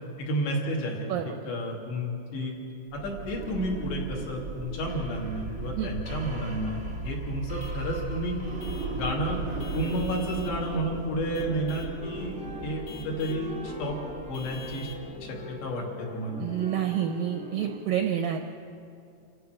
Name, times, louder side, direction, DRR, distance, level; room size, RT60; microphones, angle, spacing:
voice 1, 0.2-2.6 2.9-6.8 7.0-8.4 8.9-12.4 12.6-14.0 14.3-14.9 15.2-16.4, equal, 75° left, -2 dB, 4.9 m, -31 dB
voice 2, 1.1-1.5 5.8-5.9 16.4-18.4, right 10 dB, 80° right, 5 dB, 2.0 m, -29 dB
sound 1, 2.9-15.7, right 3 dB, 60° right, 0.7 m, -37 dB
Vehicle horn car horn honking / Truck, 7.6-7.9 8.6-9.0 9.6-10.6 11.3-12.0 12.8-13.5 14.3-15.1, left 5 dB, 50° left, 1.7 m, -47 dB
sound 2, 11.2-17.8, right 1 dB, 15° right, 0.8 m, -41 dB
28.5 x 15.0 x 6.4 m, 2.5 s
omnidirectional pair, 5.0 m